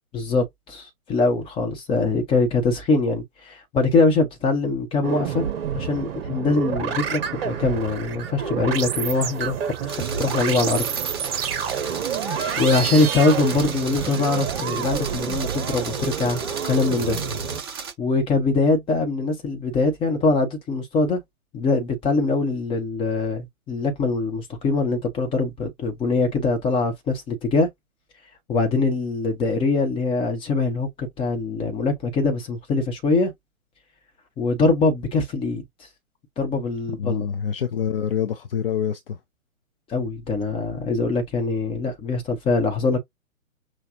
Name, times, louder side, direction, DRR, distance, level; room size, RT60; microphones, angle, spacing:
voice 1, 0.1-5.5 5.7-10.8 11.3-11.4 12.6-17.2 18.0-21.2 21.5-27.7 28.5-33.3 34.4-35.6 36.4-37.2 39.9-43.0, left 3 dB, 10° left, 1.2 m, -23 dB
sound 1, 5.0-17.6, right 7 dB, 45° right, 1.1 m, -28 dB
sound 2, 9.9-17.9, right 6 dB, 20° right, 0.5 m, -35 dB
voice 2, 37.0-39.2, left 8 dB, 40° left, 0.6 m, -26 dB
5.8 x 2.4 x 2.9 m
figure-of-eight pair, 125°, 43 cm